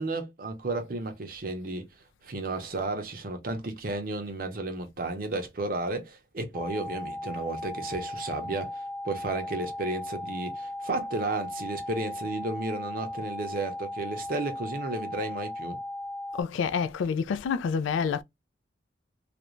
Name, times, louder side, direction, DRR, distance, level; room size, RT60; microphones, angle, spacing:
voice 1, 0.0-1.9 2.2-15.8, right 2 dB, 50° right, 0.6 m, -33 dB
sound 1, 6.5-16.4, left 1 dB, 15° left, 0.6 m, -37 dB
voice 2, 16.4-18.2, left 6 dB, 85° left, 0.3 m, -28 dB
2.4 x 2.1 x 2.9 m
head